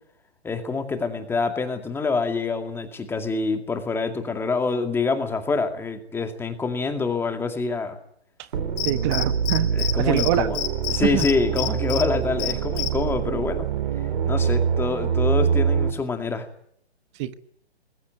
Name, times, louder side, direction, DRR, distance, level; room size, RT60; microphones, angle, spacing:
voice 1, 0.4-8.0 9.7-10.6 10.9-13.7 14.2-16.5, left 4 dB, 5° left, 6 dB, 2.2 m, -26 dB
sound 1, 8.5-15.9, right 7 dB, 50° right, 3.8 m, -25 dB
Cricket, 8.8-9.9 10.2-10.3 10.5-12.0 12.4-12.9, left 13 dB, 30° left, 4.6 m, -27 dB
voice 2, 8.8-10.5 11.0-11.2 17.2-17.3, right 13 dB, 25° right, 12 dB, 1.2 m, -25 dB
21.5 x 21.0 x 9.3 m, 0.67 s
figure-of-eight pair, 135°, 32 cm